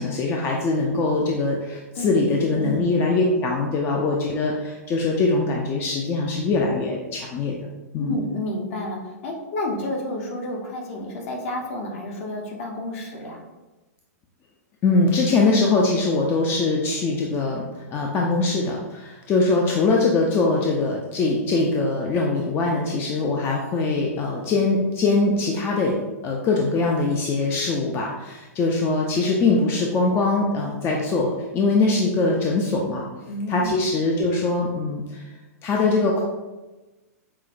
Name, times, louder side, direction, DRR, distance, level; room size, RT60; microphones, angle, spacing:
voice 1, 0.0-7.6 7.9-8.1 14.8-17.6 17.9-25.9 26.2-33.1 33.5-35.3 35.6-36.2, left 3 dB, 25° left, -1 dB, 0.4 m, -22 dB
voice 2, 2.4-2.9 8.0-13.4 33.2-33.8, left 1 dB, 55° left, 1 dB, 0.9 m, -30 dB
5.5 x 2.0 x 2.5 m, 1.1 s
hypercardioid pair, 115°, 9 cm